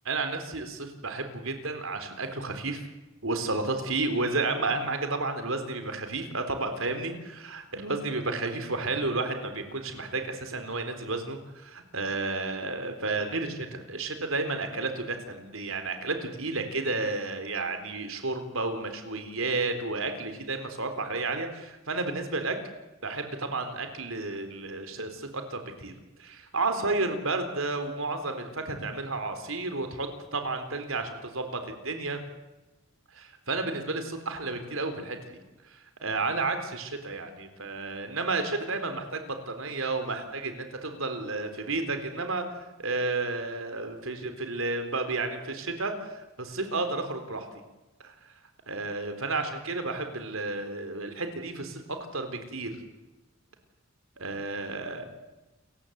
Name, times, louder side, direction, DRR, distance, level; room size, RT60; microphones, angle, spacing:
voice 1, 0.0-2.9 3.2-22.6 23.0-25.9 26.2-32.2 33.1-35.2 35.7-42.4 42.8-47.5 48.0-48.1 48.7-52.8 54.2-55.1, right 3 dB, 80° right, 7 dB, 3.9 m, -32 dB
29.0 x 15.5 x 8.2 m, 1.1 s
head